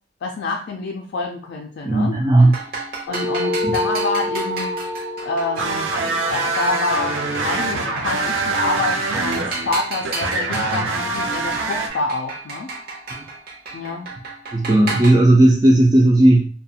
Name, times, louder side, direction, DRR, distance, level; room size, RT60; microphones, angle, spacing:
voice 1, 0.2-2.2 3.1-4.8 5.2-12.7 13.7-14.1, left 3 dB, 60° left, 0.3 m, -27 dB
voice 2, 1.9-2.5 3.6-3.7 13.1-13.2 14.5-16.5, right 1 dB, 20° right, 0.3 m, -14 dB
sound 1, 2.4-15.1, right 3 dB, 55° right, 0.7 m, -33 dB
sound 2, 3.1-7.9, left 1 dB, 70° right, 1.2 m, -28 dB
sound 3, 5.6-11.9, right 3 dB, 85° right, 0.5 m, -24 dB
2.4 x 2.2 x 2.7 m
head